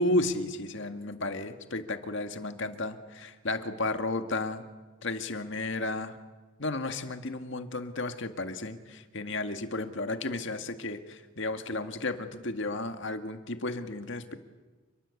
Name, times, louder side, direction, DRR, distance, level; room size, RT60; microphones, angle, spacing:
voice 1, 0.0-4.6 5.0-6.2 6.6-14.4, left 2 dB, 55° left, 7 dB, 2.0 m, -33 dB
29.0 x 22.5 x 8.5 m, 1.3 s
head